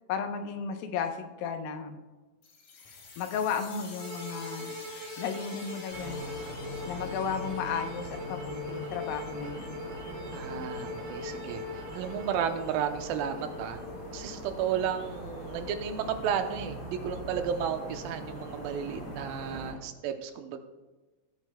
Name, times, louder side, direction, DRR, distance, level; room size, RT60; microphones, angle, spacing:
voice 1, 0.1-2.0 3.2-4.8 5.2-6.2 6.9-9.8, left 6 dB, 85° left, 6 dB, 2.6 m, -34 dB
sound 1, 2.4-13.8, left 4 dB, 60° left, 3.1 m, -50 dB
sound 2, 4.0-12.4, equal, 70° right, 2.2 m, -43 dB
sound 3, 5.9-19.7, left 1 dB, 40° left, 4.3 m, -41 dB
voice 2, 10.3-13.8 14.1-20.6, right 8 dB, 90° right, 7 dB, 2.5 m, -33 dB
17.0 x 8.3 x 2.2 m, 1.2 s
omnidirectional pair, 4.1 m